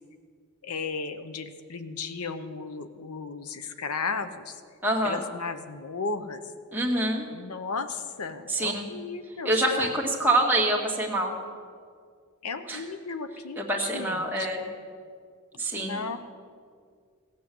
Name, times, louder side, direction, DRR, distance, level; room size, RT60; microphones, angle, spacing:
voice 1, 0.6-4.6 5.0-6.4 7.3-9.9 12.4-14.5 15.8-16.2, left 4 dB, 85° left, 10 dB, 0.8 m, -35 dB
voice 2, 4.8-5.2 6.7-7.2 8.5-8.9 9.4-11.3 12.7-12.8 13.6-14.6 15.6-16.0, right 1 dB, 10° right, -2 dB, 2.0 m, -26 dB
17.0 x 8.6 x 7.7 m, 2.1 s
head